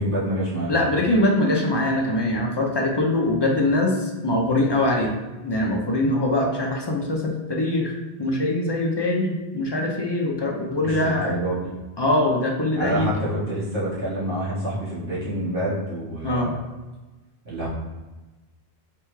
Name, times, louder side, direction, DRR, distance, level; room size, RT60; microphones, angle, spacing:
voice 1, 0.0-0.7 10.8-11.8 12.7-16.5 17.5-17.7, right 1 dB, 60° right, -9 dB, 1.7 m, -27 dB
voice 2, 0.7-5.1 5.4-7.9 8.2-11.3 12.0-13.1 16.2-16.5, left 1 dB, 35° left, 0 dB, 0.4 m, -22 dB
3.4 x 3.3 x 3.1 m, 1.1 s
omnidirectional pair, 1.0 m